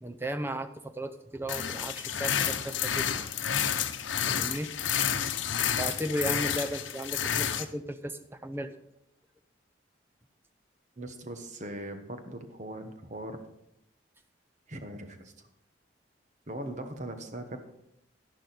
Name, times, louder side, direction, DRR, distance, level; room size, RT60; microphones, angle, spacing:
voice 1, 0.0-3.3 4.3-4.7 5.8-8.7, right 1 dB, 10° right, 8 dB, 0.6 m, -35 dB
sound 1, 1.5-7.6, left 8 dB, 85° left, 0.8 m, -30 dB
voice 2, 11.0-13.4 14.7-15.3 16.5-17.6, right 1 dB, 40° right, 7 dB, 1.2 m, -40 dB
11.5 x 11.0 x 4.1 m, 0.79 s
head